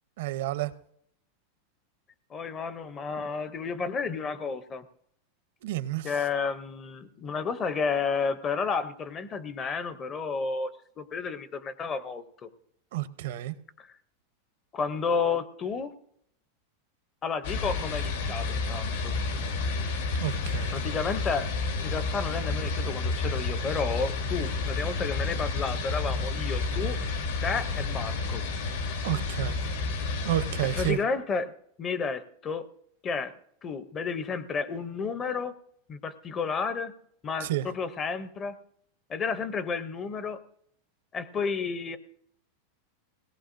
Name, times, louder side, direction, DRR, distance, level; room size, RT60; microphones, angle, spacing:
voice 1, 0.2-0.7 5.6-6.1 12.9-13.5 20.1-20.7 29.0-29.6 30.2-31.0 37.4-37.7, right 14 dB, 65° right, 14 dB, 0.6 m, -30 dB
voice 2, 2.3-4.8 6.0-10.7 11.0-12.5 13.8-13.9 14.7-15.9 17.2-19.1 20.7-21.5 21.8-27.0 27.4-28.4 30.7-31.5 31.8-32.7 33.0-33.3 33.6-35.5 35.9-36.9 37.2-38.6 39.1-40.4 41.1-42.0, left 5 dB, 20° left, 13 dB, 0.5 m, -31 dB
sound 1, 17.4-30.9, left 3 dB, 75° left, 1.8 m, -30 dB
22.0 x 17.5 x 2.5 m, 0.71 s
supercardioid pair, 170°, 0 cm